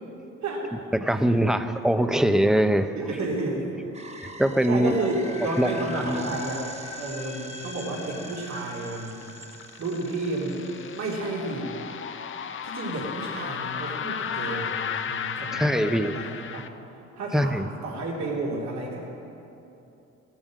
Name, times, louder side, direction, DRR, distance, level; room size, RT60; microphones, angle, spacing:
voice 1, 0.9-2.9 4.4-5.0 5.6-5.7 6.0-6.3 15.6-16.2 17.3-17.7, equal, ahead, 9 dB, 0.7 m, -22 dB
voice 2, 2.9-4.1 4.7-6.7 6.9-9.2 9.8-10.7 10.9-11.8 12.6-16.7 17.2-19.1, right 2 dB, 65° right, -3 dB, 2.9 m, -31 dB
sound 1, 3.9-11.2, right 3 dB, 20° right, 1.0 m, -45 dB
sound 2, 4.9-11.8, left 4 dB, 65° left, 1.9 m, -43 dB
sound 3, 9.0-16.7, left 7 dB, 40° left, 0.7 m, -34 dB
16.5 x 8.9 x 7.4 m, 2.9 s
cardioid pair, 90°, 30 cm